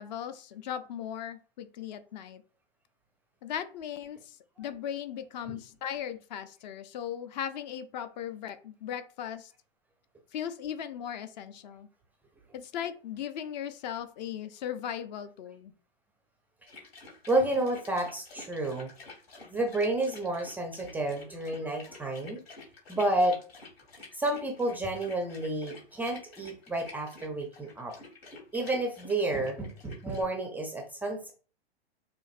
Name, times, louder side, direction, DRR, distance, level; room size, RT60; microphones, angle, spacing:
voice 1, 0.0-2.4 3.4-9.5 10.3-11.9 12.5-15.7, left 9 dB, 40° left, 11 dB, 0.6 m, -38 dB
sound 1, 16.7-30.2, left 3 dB, 65° left, 2.4 m, -50 dB
voice 2, 17.3-18.9 19.5-22.4 22.9-23.4 24.1-27.9 28.5-31.3, right 2 dB, 5° right, 2 dB, 0.4 m, -30 dB
6.9 x 2.5 x 2.5 m, 0.38 s
figure-of-eight pair, 110°, 32 cm